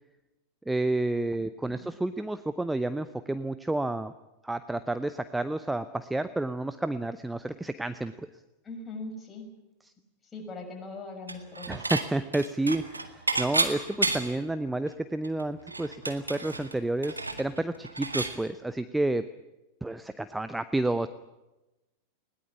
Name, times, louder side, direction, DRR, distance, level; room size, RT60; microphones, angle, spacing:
voice 1, 0.7-4.1 4.4-8.1 11.7-19.2 19.8-21.1, right 2 dB, 5° right, 12 dB, 0.8 m, -30 dB
voice 2, 8.6-9.5 10.2-11.9, left 3 dB, 20° left, 2 dB, 6.3 m, -41 dB
Dishes pots and pans / Chink clink, 11.3-12.1 12.3-14.5 14.9-15.0 15.2-18.4, right 2 dB, 80° right, 1.9 m, -31 dB
20.5 x 18.5 x 9.9 m, 1.0 s
figure-of-eight pair, 90°, 0 cm